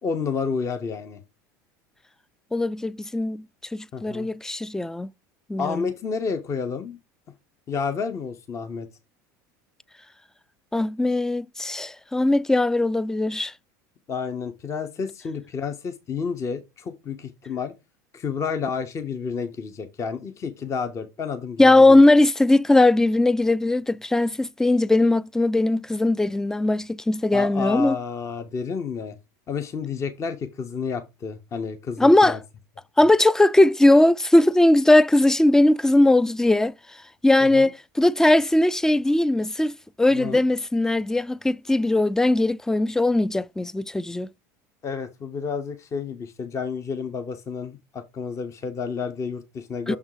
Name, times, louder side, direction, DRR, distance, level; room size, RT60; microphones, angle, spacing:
voice 1, 0.0-1.2 3.9-4.3 5.6-7.0 7.7-8.9 14.1-17.7 18.1-22.0 27.3-29.2 29.5-32.4 37.4-37.7 40.1-40.4 44.8-50.0, left 5 dB, 35° left, 0.9 m, -30 dB
voice 2, 2.5-3.4 3.7-5.1 5.5-5.9 10.7-13.5 21.6-28.0 32.0-32.4 33.0-36.7 37.2-44.3 49.9-50.0, left 2 dB, 5° left, 0.3 m, -19 dB
6.6 x 3.5 x 4.7 m
supercardioid pair, 100°, 9 cm